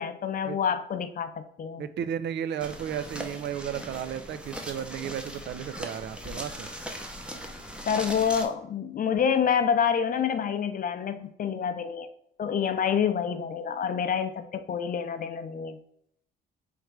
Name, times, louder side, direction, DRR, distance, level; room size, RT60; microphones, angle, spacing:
voice 1, 0.0-1.8 7.9-12.1 12.4-15.8, left 7 dB, 45° left, 10 dB, 0.5 m, -27 dB
voice 2, 1.8-6.7, right 9 dB, 60° right, 12 dB, 0.4 m, -34 dB
sound 1, 2.6-8.5, equal, 5° right, 0.7 m, -39 dB
3.5 x 3.2 x 4.5 m, 0.71 s
cardioid pair, 90°, 20 cm